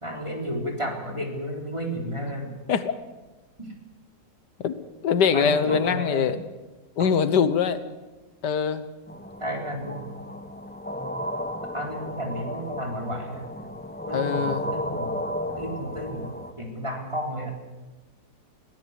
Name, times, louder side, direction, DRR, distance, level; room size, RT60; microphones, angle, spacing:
voice 1, 0.0-2.5 3.6-3.7 5.3-6.4 7.0-7.1 9.4-10.0 11.7-13.5 14.1-15.2 15.6-17.5, equal, 15° right, 1 dB, 4.1 m, -32 dB
voice 2, 5.0-6.4 7.0-7.8 8.4-8.8 14.1-14.6, left 7 dB, 85° left, 12 dB, 1.7 m, -23 dB
sound 1, 9.1-16.5, equal, 5° left, 0.9 m, -33 dB
22.0 x 16.5 x 8.2 m, 1.2 s
omnidirectional pair, 1.8 m